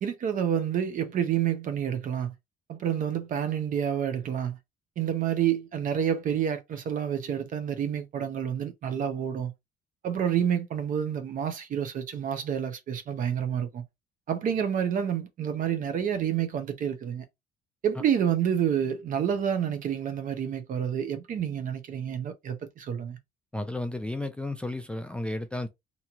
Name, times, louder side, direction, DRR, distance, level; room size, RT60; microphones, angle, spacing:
voice 1, 0.0-2.3 2.7-4.6 5.0-9.5 10.0-13.8 14.3-17.2 17.8-23.2, right 9 dB, 50° right, 0.7 m, -28 dB
voice 2, 23.5-25.7, left 2 dB, 5° left, 0.3 m, -33 dB
2.9 x 2.7 x 2.3 m
cardioid pair, 110°, 17 cm